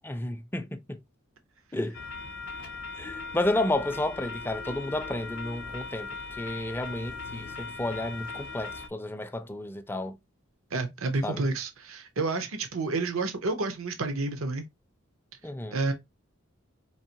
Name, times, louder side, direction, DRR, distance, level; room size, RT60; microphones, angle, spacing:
voice 1, 0.1-1.0 1.7-2.0 3.0-6.1 6.4-10.2 11.2-11.5 15.4-15.8, left 1 dB, 10° left, 0.4 m, -31 dB
sound 1, 1.9-8.9, left 4 dB, 60° left, 0.5 m, -39 dB
voice 2, 10.7-14.6 15.7-15.9, right 3 dB, 85° right, 0.7 m, -30 dB
4.6 x 2.9 x 2.8 m
head